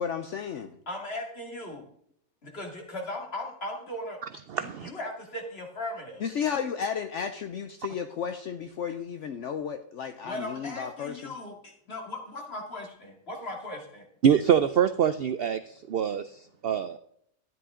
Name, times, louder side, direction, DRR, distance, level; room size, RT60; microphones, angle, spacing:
voice 1, 0.0-0.8 6.2-11.3, left 7 dB, 65° left, 8 dB, 1.0 m, -33 dB
voice 2, 0.9-1.8 2.4-4.2 4.5-6.2 10.2-14.0, left 1 dB, 45° left, 0 dB, 2.6 m, -38 dB
voice 3, 4.5-4.9 14.2-17.0, right 8 dB, 70° right, 11 dB, 0.5 m, -25 dB
12.5 x 10.0 x 3.7 m, 0.71 s
omnidirectional pair, 1.5 m